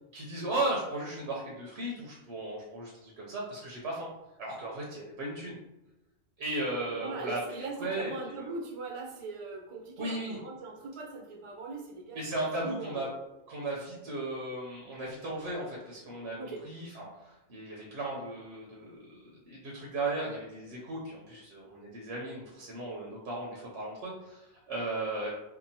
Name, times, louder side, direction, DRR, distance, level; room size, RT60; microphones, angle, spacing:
voice 1, 0.1-4.1 4.4-5.5 6.4-8.5 10.0-10.4 12.1-13.1 13.5-16.4 16.6-18.9 19.4-25.3, right 2 dB, 90° right, -4 dB, 0.9 m, -36 dB
voice 2, 6.9-12.3 12.6-13.2 16.4-16.6, right 3 dB, 40° right, -1 dB, 0.5 m, -40 dB
2.8 x 2.2 x 2.7 m, 0.96 s
omnidirectional pair, 1.1 m